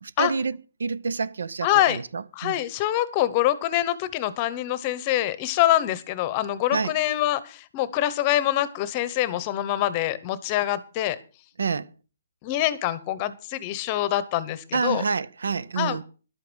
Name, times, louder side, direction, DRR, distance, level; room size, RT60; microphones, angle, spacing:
voice 1, 0.0-2.6 6.7-7.0 11.6-11.9 14.7-16.0, right 5 dB, 85° right, 0.7 m, -28 dB
voice 2, 1.6-2.0 2.4-11.2 12.4-15.0 15.8-16.0, left 13 dB, 25° left, 0.8 m, -25 dB
12.0 x 8.5 x 6.2 m
hypercardioid pair, 170°, 0 cm